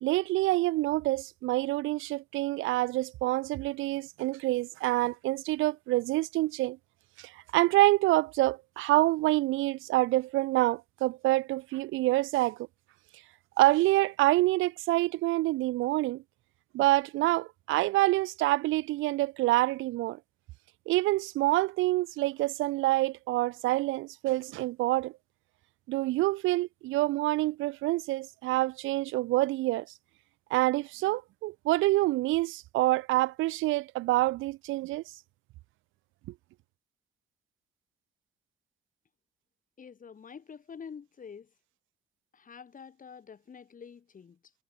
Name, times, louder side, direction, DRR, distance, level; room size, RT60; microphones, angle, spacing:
voice 1, 0.0-6.8 7.2-12.6 13.6-16.2 16.7-20.2 20.9-25.1 25.9-29.9 30.5-35.0, right 18 dB, 85° right, 0.4 m, -27 dB
voice 2, 39.8-41.5 42.3-44.5, left 6 dB, 40° left, 2.5 m, -47 dB
cardioid pair, 90°, 20 cm